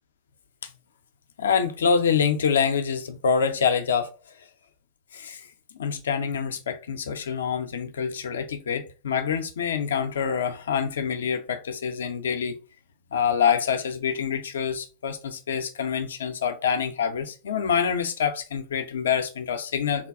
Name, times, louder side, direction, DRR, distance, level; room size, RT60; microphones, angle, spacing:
voice 1, 1.4-4.1 5.1-5.5 5.8-12.6 13.1-20.1, left 7 dB, 80° left, 0.4 m, -26 dB
3.4 x 2.2 x 2.4 m
hypercardioid pair, 90°, 0 cm